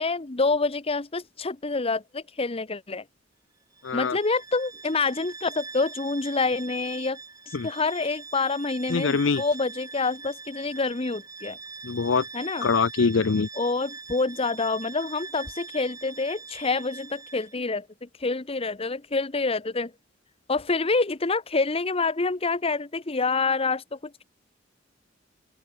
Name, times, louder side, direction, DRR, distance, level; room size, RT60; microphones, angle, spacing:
voice 1, 0.0-3.0 3.9-7.2 7.5-11.6 12.3-12.7 13.6-19.9 20.5-24.2, left 3 dB, 30° left, 1.0 m, -27 dB
Bowed string instrument, 3.7-17.6, right 4 dB, 20° right, 1.7 m, -42 dB
voice 2, 3.8-4.2 7.5-7.7 8.9-9.4 11.8-12.3 12.6-13.5, left 5 dB, 75° left, 0.6 m, -23 dB
open air
head